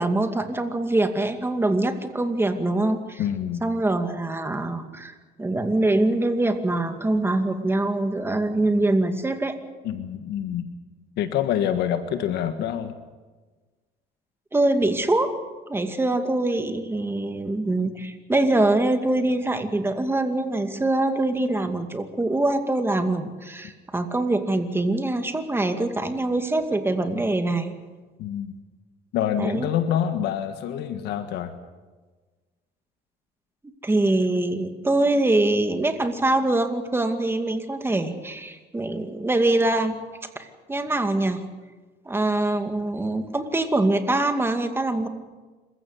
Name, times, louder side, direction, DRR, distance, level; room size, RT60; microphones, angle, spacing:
voice 1, 0.0-3.2 3.6-9.6 14.5-15.3 15.7-27.7 29.4-29.7 33.8-40.0 40.4-41.4 42.1-45.1, right 2 dB, 15° right, 7 dB, 2.3 m, -24 dB
voice 2, 3.2-3.7 9.8-10.7 11.2-12.9 28.2-28.5 29.1-31.5, left 9 dB, 85° left, 9 dB, 1.6 m, -26 dB
26.5 x 15.5 x 8.3 m, 1.3 s
cardioid pair, 110°, 17 cm